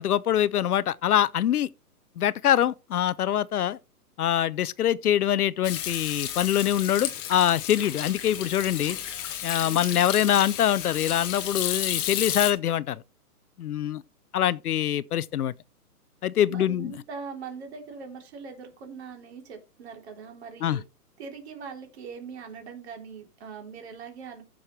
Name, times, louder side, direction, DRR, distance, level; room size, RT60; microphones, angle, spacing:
voice 1, 0.0-1.7 2.2-3.8 4.2-9.0 9.4-13.0 13.6-14.0 14.3-15.5 16.2-16.9 20.6-20.8, left 11 dB, 70° left, 0.7 m, -24 dB
Hands / Sink (filling or washing), 5.6-12.5, left 10 dB, 15° left, 0.9 m, -32 dB
voice 2, 9.6-10.0 16.5-20.8 21.2-24.4, right 5 dB, 40° right, 3.5 m, -41 dB
15.0 x 6.4 x 3.2 m
hypercardioid pair, 160°, 47 cm